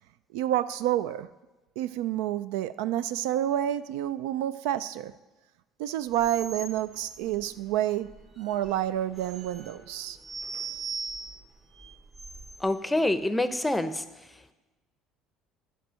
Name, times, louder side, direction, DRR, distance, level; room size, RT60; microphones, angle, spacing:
voice 1, 0.3-1.3 1.8-5.1 5.8-8.1 8.4-10.2, right 12 dB, 85° right, 14 dB, 0.3 m, -29 dB
sound 1, 6.1-12.7, right 4 dB, 40° right, 1.6 m, -41 dB
voice 2, 12.6-14.0, left 1 dB, 10° left, 11 dB, 0.6 m, -26 dB
10.0 x 4.6 x 6.3 m, 1.1 s
supercardioid pair, 90°, 0 cm